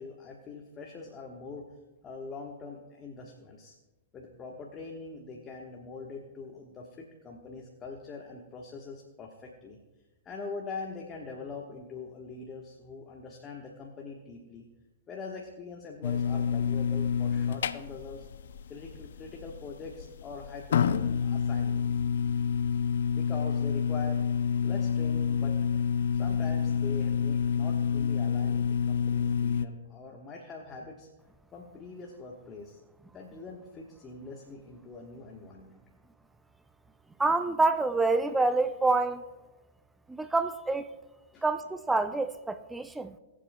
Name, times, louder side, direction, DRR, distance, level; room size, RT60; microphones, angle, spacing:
voice 1, 0.0-1.7 2.0-3.7 4.1-9.8 10.2-14.7 15.1-18.3 18.7-21.9 23.1-24.2 24.6-25.5 26.1-31.1 31.5-32.8 33.1-35.8 41.3-41.4, left 4 dB, 25° left, 1.2 m, -43 dB
sound 1, 16.0-29.7, left 7 dB, 75° left, 0.4 m, -28 dB
voice 2, 37.2-39.2 40.1-40.9 41.4-43.2, right 3 dB, 10° right, 0.5 m, -27 dB
21.5 x 7.5 x 2.2 m
hypercardioid pair, 120°, 0 cm